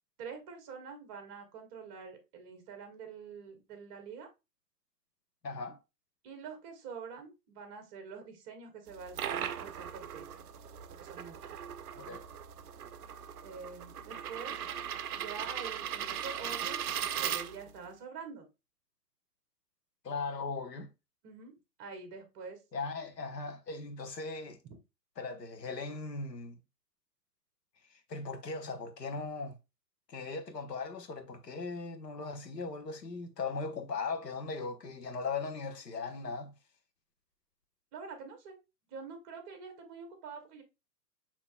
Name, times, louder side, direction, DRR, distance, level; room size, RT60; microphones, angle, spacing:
voice 1, 0.2-4.3 6.2-10.4 11.0-11.4 13.4-14.7 15.2-16.8 17.2-18.5 21.2-22.6 37.9-38.6 38.9-40.6, right 5 dB, 20° right, 0.9 m, -46 dB
voice 2, 5.4-5.8 11.9-12.2 20.0-20.9 22.7-24.6 25.2-26.6 28.1-29.5 30.1-36.5, left 4 dB, 75° left, 1.0 m, -38 dB
sound 1, 8.9-17.9, right 9 dB, 65° right, 0.5 m, -38 dB
6.6 x 2.9 x 2.2 m
figure-of-eight pair, 120°, 49 cm